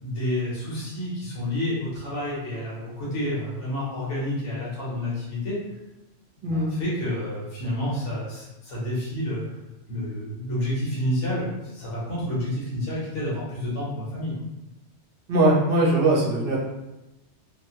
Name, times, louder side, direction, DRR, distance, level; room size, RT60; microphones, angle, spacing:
voice 1, 0.0-5.6 6.4-9.4 9.9-14.3, left 1 dB, 85° left, -7 dB, 1.3 m, -29 dB
voice 2, 15.3-16.6, right 2 dB, 55° right, -4 dB, 1.0 m, -20 dB
2.8 x 2.3 x 2.8 m, 0.99 s
omnidirectional pair, 1.2 m